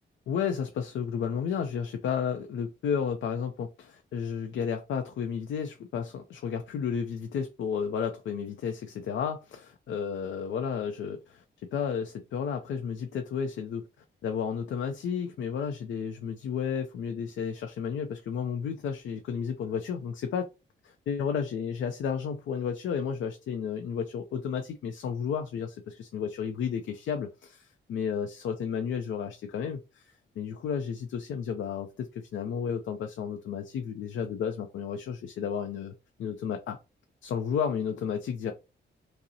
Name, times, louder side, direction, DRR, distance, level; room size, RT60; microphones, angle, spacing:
voice 1, 0.3-13.9 14.2-20.5 20.8-35.9 36.2-36.8 37.2-38.5, left 7 dB, 75° left, 0.5 m, -32 dB
5.3 x 2.0 x 2.7 m
wide cardioid pair, 170°, 20 cm